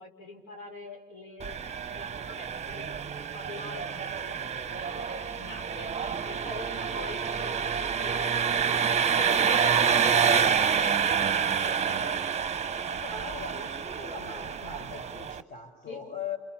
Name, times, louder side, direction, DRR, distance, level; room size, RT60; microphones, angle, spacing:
voice 1, 0.0-1.6 1.9-8.8 9.2-12.3 15.8-16.0, left 3 dB, 75° left, 0 dB, 6.1 m, -46 dB
Engine, 1.4-15.4, right 7 dB, 30° right, 0.9 m, -28 dB
voice 2, 12.9-16.4, left 5 dB, 40° left, 3 dB, 4.9 m, -40 dB
28.5 x 28.5 x 7.3 m, 1.3 s
supercardioid pair, 70°, 21 cm